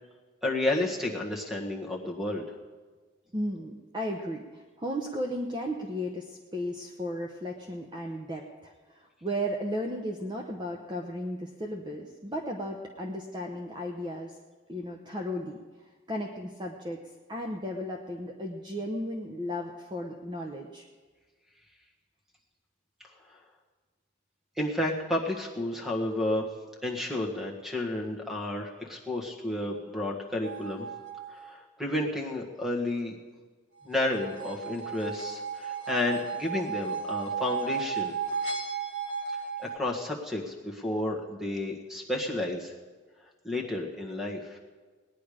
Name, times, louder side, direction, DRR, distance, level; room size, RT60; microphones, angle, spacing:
voice 1, 0.4-2.4 23.0-23.4 24.6-26.4 26.8-30.9 31.3-33.2 33.8-38.1 39.6-42.7 43.4-44.6, left 1 dB, ahead, 0 dB, 1.5 m, -31 dB
voice 2, 3.3-14.4 14.7-17.0 17.3-20.9, equal, 20° right, 1 dB, 0.8 m, -35 dB
sound 1, 30.4-31.5 33.9-39.8, right 6 dB, 65° right, 2.0 m, -34 dB
18.5 x 10.0 x 5.0 m, 1.4 s
head